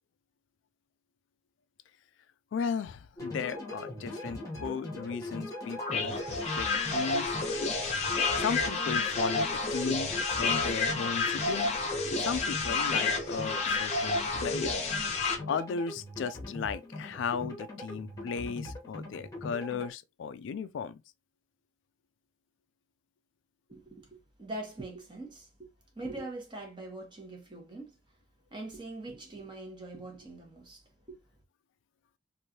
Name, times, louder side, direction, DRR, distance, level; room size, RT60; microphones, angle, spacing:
voice 1, 2.5-6.2 6.6-7.3 8.4-11.7 12.2-14.8 15.5-21.0, left 6 dB, 75° left, 0.3 m, -36 dB
sound 1, 3.2-19.9, left 1 dB, 15° left, 1.0 m, -41 dB
sound 2, 5.8-15.3, left 3 dB, 35° left, 0.6 m, -30 dB
voice 2, 23.7-25.7 25.9-27.9 28.5-30.8 31.1-31.2, right 2 dB, 25° right, 1.1 m, -42 dB
3.1 x 2.6 x 2.7 m
head